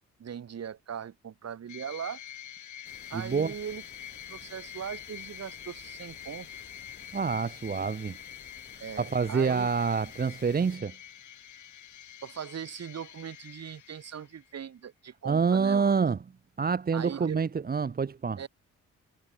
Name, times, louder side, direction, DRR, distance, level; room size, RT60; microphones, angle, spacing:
voice 1, 0.2-2.2 3.1-3.8 4.3-6.5 8.8-9.7 12.2-16.0 16.9-17.4 18.4-18.5, right 8 dB, 55° right, 4.8 m, -39 dB
sound 1, 1.7-14.5, left 10 dB, 70° left, 4.5 m, -46 dB
sound 2, 2.8-10.8, left 5 dB, 35° left, 6.7 m, -54 dB
voice 2, 3.1-3.5 7.1-8.2 9.0-10.9 15.3-16.2 16.6-18.4, right 5 dB, 30° right, 1.1 m, -27 dB
cardioid pair, 90°, 30 cm